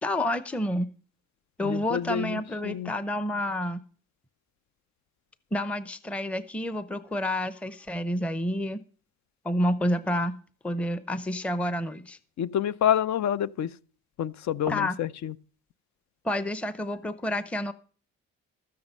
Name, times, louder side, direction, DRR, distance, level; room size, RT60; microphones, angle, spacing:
voice 1, 0.0-0.9 1.6-3.8 5.5-8.8 9.4-10.4 10.6-12.2 14.7-15.0 16.2-17.7, left 1 dB, 5° left, 0.7 m, -29 dB
voice 2, 1.6-2.9 12.4-13.7 14.2-15.3, left 10 dB, 65° left, 0.7 m, -28 dB
13.0 x 9.5 x 5.5 m
cardioid pair, 90°, 30 cm